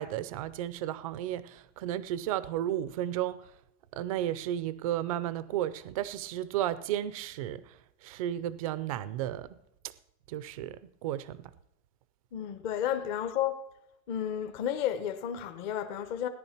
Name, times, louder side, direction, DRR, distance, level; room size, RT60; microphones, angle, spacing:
voice 1, 0.0-3.4 3.9-9.5 9.8-9.9 10.3-11.5, right 12 dB, 30° right, 0.4 m, -33 dB
voice 2, 12.3-13.5 14.1-16.3, left 10 dB, 35° left, 1.1 m, -32 dB
17.0 x 10.5 x 5.9 m
supercardioid pair, 180°, 39 cm